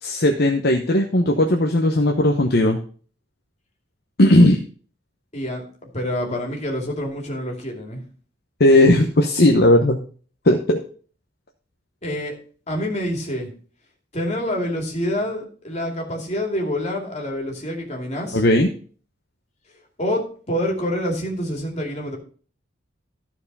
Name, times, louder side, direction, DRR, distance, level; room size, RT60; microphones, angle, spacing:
voice 1, 0.0-2.8 4.2-4.6 8.6-10.0 10.4-10.8 18.3-18.7, left 1 dB, 55° left, 2 dB, 0.9 m, -16 dB
voice 2, 5.3-8.0 12.0-12.3 12.7-13.5 14.1-18.4 20.0-22.2, equal, 35° left, 1 dB, 2.6 m, -27 dB
13.5 x 4.8 x 5.4 m, 0.43 s
head